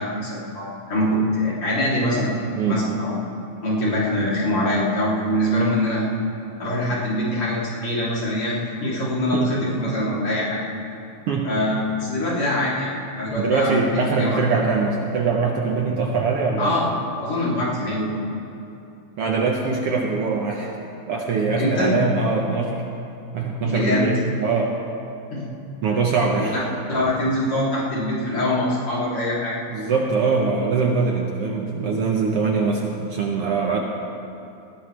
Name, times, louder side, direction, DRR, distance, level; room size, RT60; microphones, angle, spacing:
voice 1, 0.0-2.3 2.7-3.1 3.6-6.1 6.6-8.6 8.8-10.6 11.4-12.9 13.2-14.4 16.6-18.2 21.6-21.9 23.6-24.0 25.3-25.5 25.8-26.0 26.4-26.6 26.9-29.6, left 1 dB, 45° left, -7 dB, 4.0 m, -23 dB
voice 2, 13.4-16.8 19.2-20.7 21.1-22.8 23.3-24.7 25.8-26.6 29.7-33.8, right 4 dB, 60° right, 0 dB, 1.7 m, -22 dB
19.5 x 17.0 x 3.4 m, 2.8 s
omnidirectional pair, 3.4 m